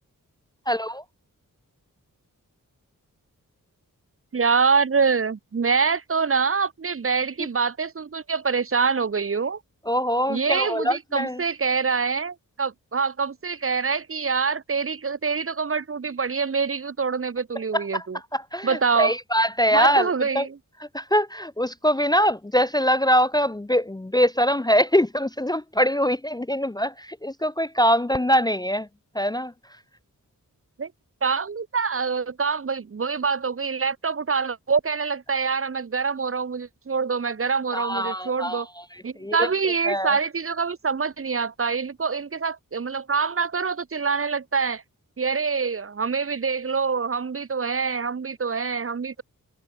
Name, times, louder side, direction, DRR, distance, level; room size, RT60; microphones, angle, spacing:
voice 1, 0.7-1.0 9.9-11.4 17.7-18.0 18.3-20.5 20.9-28.9 29.2-29.5 37.7-38.6 39.2-39.5 39.9-40.1, equal, 10° left, 0.6 m, -23 dB
voice 2, 4.3-9.6 10.3-18.2 18.6-19.2 19.7-20.6 30.8-30.9 31.2-38.7 39.0-44.8 45.2-49.2, right 5 dB, 40° right, 0.9 m, -25 dB
wide cardioid pair, 100°, 33 cm